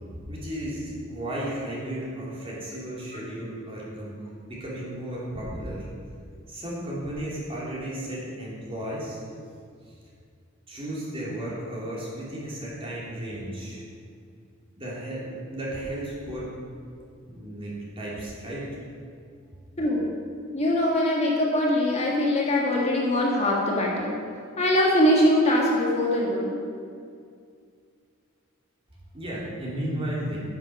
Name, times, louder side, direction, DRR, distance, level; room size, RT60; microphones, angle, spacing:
voice 1, 0.0-4.1 4.5-5.9 6.5-9.2 10.7-13.8 14.7-16.5 17.3-18.7 29.1-30.4, right 1 dB, 30° right, -5 dB, 3.1 m, -34 dB
voice 2, 19.8-20.1 20.5-24.2 24.6-26.6, left 1 dB, 30° left, -3 dB, 1.7 m, -22 dB
10.0 x 9.3 x 5.9 m, 2.2 s
head